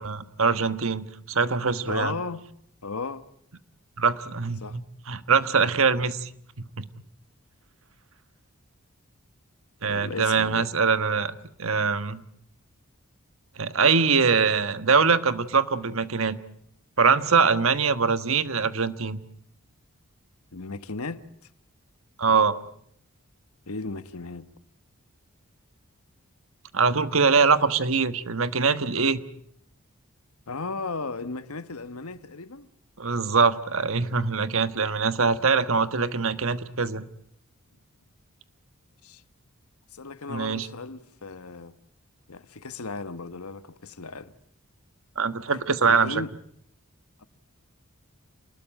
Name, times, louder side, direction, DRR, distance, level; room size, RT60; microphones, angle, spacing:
voice 1, 0.0-2.1 4.0-4.8 5.1-6.3 6.8-6.9 9.8-12.2 13.6-16.4 17.0-19.2 22.2-22.6 26.7-29.2 33.0-37.0 40.3-40.7 45.2-46.2, right 5 dB, 70° right, 1.3 m, -23 dB
voice 2, 1.9-2.4 2.8-3.3 4.6-4.8 9.8-10.7 20.5-21.2 23.7-24.5 30.5-32.7 39.0-39.2 39.9-41.7 42.3-44.3 45.9-46.3 47.2-47.3, left 3 dB, 80° left, 1.2 m, -35 dB
28.5 x 20.0 x 9.1 m
head